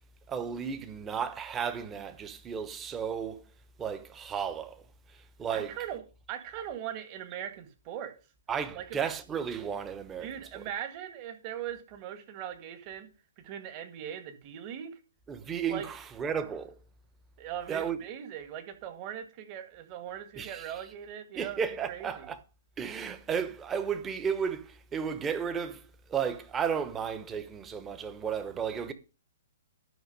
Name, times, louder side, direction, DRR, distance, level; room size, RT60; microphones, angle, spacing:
voice 1, 0.3-3.5 3.8-4.8 5.4-5.7 8.5-10.3 15.3-16.8 17.7-18.0 20.4-20.6 21.4-22.4 22.8-25.8 26.1-28.9, right 7 dB, 15° right, 1.0 m, -33 dB
voice 2, 5.5-8.2 8.7-9.0 10.2-13.1 13.4-15.0 15.7-15.9 17.4-22.3, right 10 dB, 35° right, 1.8 m, -40 dB
11.0 x 5.8 x 5.3 m
figure-of-eight pair, 120°, 0 cm